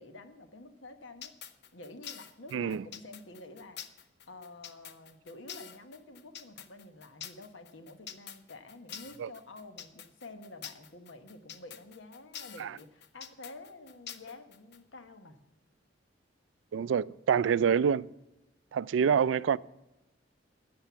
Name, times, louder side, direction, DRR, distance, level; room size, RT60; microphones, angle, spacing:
voice 1, 0.0-1.3 1.7-15.4, left 2 dB, 85° left, 1.2 m, -49 dB
sound 1, 1.2-14.8, left 9 dB, 60° left, 0.7 m, -46 dB
voice 2, 2.5-2.8 9.2-9.3 12.6-12.7 16.7-18.1 18.7-19.6, right 7 dB, 80° right, 0.3 m, -26 dB
13.0 x 7.9 x 5.7 m
head